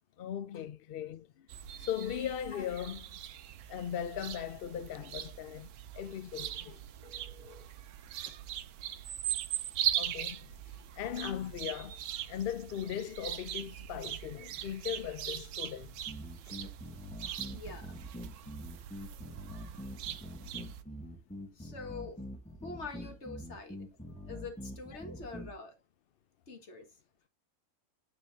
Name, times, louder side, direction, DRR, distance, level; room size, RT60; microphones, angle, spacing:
voice 1, 0.2-1.5 1.8-3.0 3.7-5.7 5.9-6.8 9.9-10.5 10.9-12.0 12.3-16.0 17.2-17.4, left 10 dB, 70° left, 0.5 m, -38 dB
sound 1, 1.5-20.8, right 11 dB, 90° right, 1.2 m, -40 dB
Telephone, 7.0-7.7 8.2-8.3 10.1-10.2 10.7-10.8 16.1-17.0 24.1-24.3, left 2 dB, 30° left, 1.9 m, -60 dB
sound 2, 16.1-25.5, equal, 5° left, 0.9 m, -45 dB
voice 2, 17.5-18.0 21.6-22.2 22.6-23.8 24.3-25.8 26.5-26.9, left 3 dB, 50° left, 1.8 m, -45 dB
9.6 x 3.8 x 2.7 m
omnidirectional pair, 1.6 m